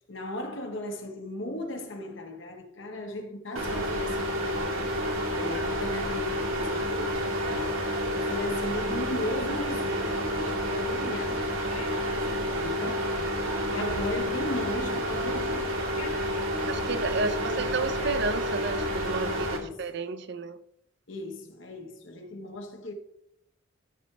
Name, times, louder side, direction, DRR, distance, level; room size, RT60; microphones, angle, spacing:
voice 1, 0.1-13.2 13.6-15.9 17.1-17.6 19.2-19.9 21.1-22.9, left 1 dB, 65° left, 1.5 m, -37 dB
sound 1, 3.6-19.6, equal, 80° right, 2.2 m, -29 dB
sound 2, 10.1-18.2, left 3 dB, 90° left, 2.9 m, -49 dB
voice 2, 16.7-20.6, right 3 dB, 55° right, 0.6 m, -31 dB
13.0 x 6.3 x 3.4 m
head